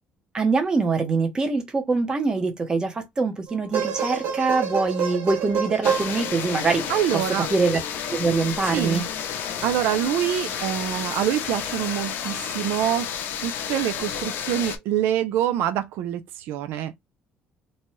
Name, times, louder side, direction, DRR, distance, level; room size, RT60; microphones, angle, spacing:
voice 1, 0.3-6.8 7.1-7.2 7.5-7.8 8.1-9.0, right 4 dB, 20° right, 0.8 m, -24 dB
sound 1, 3.5-7.0 8.5-8.6, right 7 dB, 60° right, 1.0 m, -27 dB
sound 2, 5.8-14.8, left 8 dB, 65° left, 0.6 m, -31 dB
voice 2, 6.9-7.5 8.7-9.0 9.6-13.1 13.4-17.0, right 11 dB, 80° right, 0.4 m, -25 dB
2.7 x 2.2 x 3.0 m
cardioid pair, 140°, 4 cm